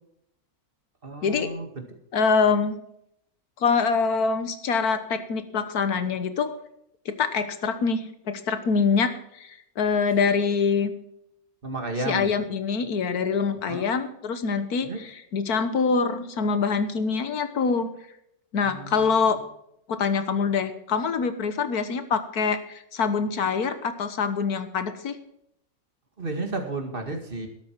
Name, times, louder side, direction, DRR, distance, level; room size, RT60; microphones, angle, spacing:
voice 1, 1.0-1.8 11.6-12.3 13.6-13.9 14.8-15.0 18.6-19.4 26.2-27.5, right 2 dB, 35° right, 4 dB, 2.2 m, -33 dB
voice 2, 2.1-2.8 3.6-6.6 7.1-10.9 12.1-14.9 15.3-17.9 18.5-19.4 19.9-25.2, left 5 dB, 85° left, 10 dB, 1.7 m, -25 dB
12.5 x 12.5 x 4.6 m, 0.76 s
omnidirectional pair, 1.6 m